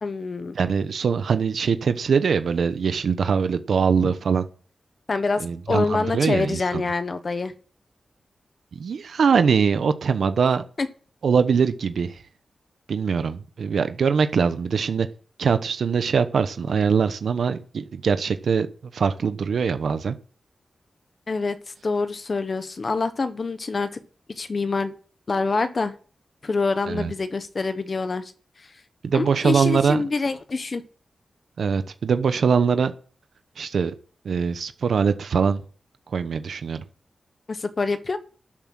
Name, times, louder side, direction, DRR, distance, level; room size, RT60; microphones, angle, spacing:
voice 1, 0.0-0.5 4.0-4.1 5.1-7.5 10.8-10.9 21.3-24.0 24.3-24.9 25.3-25.9 26.4-28.3 29.1-30.8 37.5-38.2, left 3 dB, 45° left, 10 dB, 1.2 m, -26 dB
voice 2, 0.5-4.5 5.4-6.8 8.7-10.6 11.2-12.2 12.9-15.1 15.4-20.2 26.9-27.1 29.0-30.0 31.6-32.9 33.6-33.9 34.2-35.6 36.1-36.8, right 6 dB, 85° right, 10 dB, 0.9 m, -22 dB
12.5 x 7.4 x 6.1 m, 0.42 s
wide cardioid pair, 115°, 0 cm